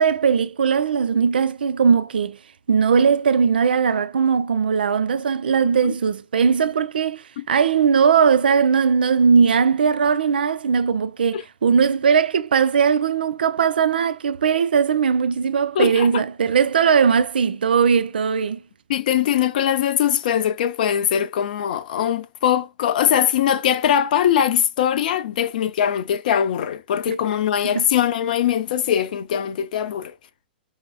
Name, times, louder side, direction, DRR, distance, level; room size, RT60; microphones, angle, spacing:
voice 1, 0.0-2.4 2.7-18.6 27.1-27.2 27.6-27.9, right 6 dB, 70° right, 0.4 m, -19 dB
voice 2, 15.8-16.1 18.9-30.1, left 9 dB, 55° left, 0.4 m, -21 dB
5.5 x 2.7 x 2.2 m
figure-of-eight pair, 105°, 5 cm